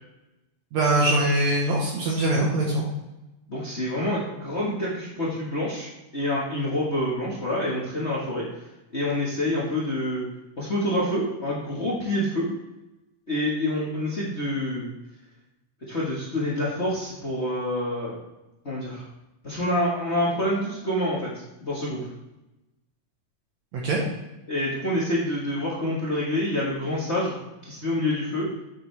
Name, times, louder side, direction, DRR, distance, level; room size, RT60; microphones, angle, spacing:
voice 1, 0.7-2.9 23.7-24.0, right 1 dB, 65° right, -3 dB, 2.4 m, -22 dB
voice 2, 3.5-8.4 8.9-10.2 10.6-12.5 13.3-14.9 15.9-18.2 18.6-19.0 19.4-21.3 21.6-22.0 24.5-27.4 27.6-28.5, left 1 dB, 40° left, -6 dB, 1.0 m, -27 dB
8.5 x 7.0 x 3.4 m, 0.97 s
omnidirectional pair, 3.7 m